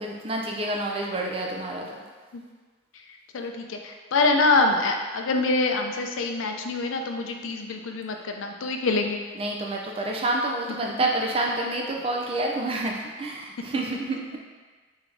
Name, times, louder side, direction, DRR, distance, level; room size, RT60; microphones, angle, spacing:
voice 1, 0.0-2.0 9.4-14.4, right 2 dB, 30° right, 0 dB, 0.5 m, -28 dB
voice 2, 3.3-9.2 10.8-11.1, left 3 dB, 85° left, 4 dB, 0.5 m, -25 dB
3.9 x 3.5 x 3.3 m, 1.4 s
head